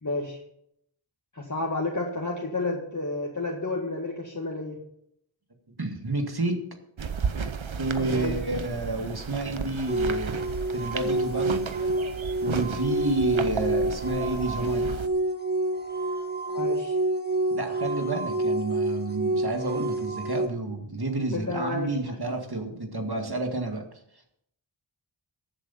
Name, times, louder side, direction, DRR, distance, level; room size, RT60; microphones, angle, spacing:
voice 1, 0.0-0.4 1.3-4.8 8.0-8.4 16.5-17.0 21.3-22.0, left 2 dB, 40° left, -1 dB, 1.9 m, -31 dB
voice 2, 5.8-6.7 7.8-10.4 10.7-11.8 12.4-15.0 17.5-23.8, right 2 dB, 55° right, 4 dB, 2.0 m, -30 dB
sound 1, 7.0-15.1, right 6 dB, 80° right, 0.9 m, -34 dB
sound 2, 9.9-20.5, right 2 dB, 20° right, 1.6 m, -28 dB
14.5 x 7.9 x 5.7 m, 0.73 s
wide cardioid pair, 40°, 47 cm